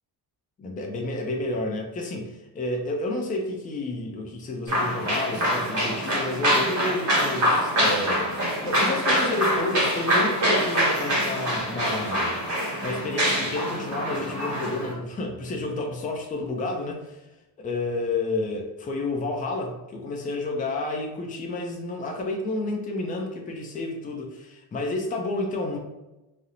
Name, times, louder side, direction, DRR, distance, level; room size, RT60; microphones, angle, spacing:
voice 1, 0.6-12.3 12.8-17.2 17.6-25.8, left 2 dB, 20° left, 1 dB, 0.3 m, -30 dB
sound 1, 4.7-14.9, equal, 45° right, 1.0 m, -25 dB
2.4 x 2.0 x 2.8 m, 0.99 s
cardioid pair, 140°, 42 cm